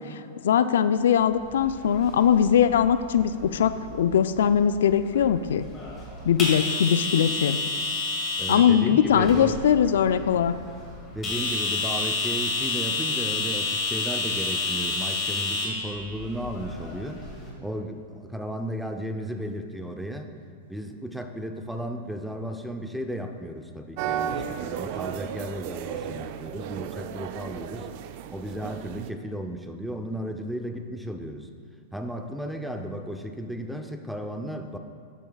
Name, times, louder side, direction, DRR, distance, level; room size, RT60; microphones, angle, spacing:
voice 1, 0.1-5.6 6.2-7.6 8.5-10.6, left 8 dB, 80° left, 12 dB, 0.3 m, -21 dB
sound 1, 1.4-17.5, left 3 dB, 25° left, 2.0 m, -31 dB
voice 2, 8.4-9.6 11.1-17.2 17.6-20.3 20.7-27.9 28.3-31.5 31.9-34.8, equal, ahead, 5 dB, 0.5 m, -34 dB
sound 2, 24.0-29.1, right 9 dB, 50° right, 0.4 m, -34 dB
11.0 x 8.2 x 2.3 m, 2.4 s
hypercardioid pair, 125°, 0 cm